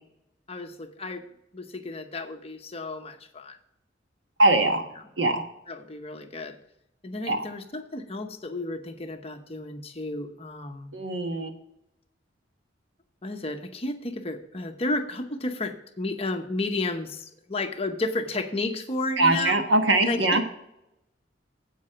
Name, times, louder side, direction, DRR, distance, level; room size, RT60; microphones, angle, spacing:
voice 1, 0.5-1.2 1.5-3.6 5.7-6.5 7.0-10.9 13.2-19.6 20.0-20.4, left 2 dB, 35° left, 6 dB, 0.9 m, -32 dB
voice 2, 4.4-4.8 5.2-5.4 7.3-7.4 10.9-11.5 19.2-20.4, right 2 dB, 75° right, 5 dB, 1.4 m, -22 dB
8.5 x 8.2 x 5.7 m, 0.83 s
head